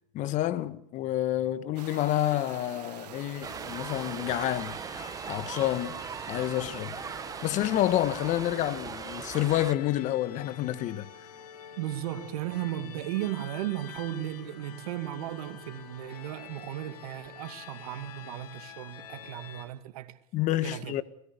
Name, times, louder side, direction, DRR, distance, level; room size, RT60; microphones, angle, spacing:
voice 1, 0.1-6.0 6.3-7.0 7.4-11.1 20.3-21.0, left 14 dB, 35° left, 1.5 m, -29 dB
sound 1, 1.8-8.5, right 11 dB, 85° right, 1.2 m, -48 dB
sound 2, 2.9-19.7, left 9 dB, 75° left, 6.1 m, -48 dB
sound 3, 3.4-9.7, right 6 dB, 15° right, 1.1 m, -39 dB
voice 2, 11.8-20.2 20.6-20.9, right 13 dB, 65° right, 2.2 m, -35 dB
30.0 x 18.5 x 6.9 m
hypercardioid pair, 125°, 20 cm